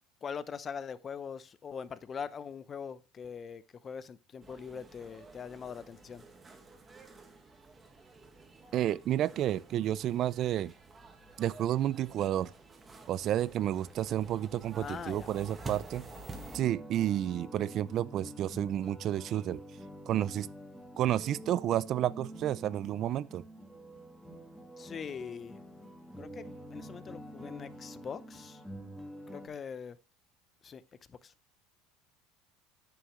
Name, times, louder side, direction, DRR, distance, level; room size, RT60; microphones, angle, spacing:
voice 1, 0.2-6.2 14.8-15.3 24.8-25.6 26.2-26.4 26.7-28.6 29.3-30.0 30.6-30.8, left 6 dB, 30° left, 0.6 m, -42 dB
sound 1, 4.4-16.6, right 3 dB, 20° right, 1.4 m, -50 dB
voice 2, 8.7-10.7 11.4-12.5 13.1-16.1 16.5-19.6 20.1-20.5 21.0-23.4, right 12 dB, 45° right, 0.3 m, -31 dB
sound 2, 16.3-29.5, equal, ahead, 1.9 m, -47 dB
9.2 x 6.6 x 3.1 m
supercardioid pair, 125°, 0 cm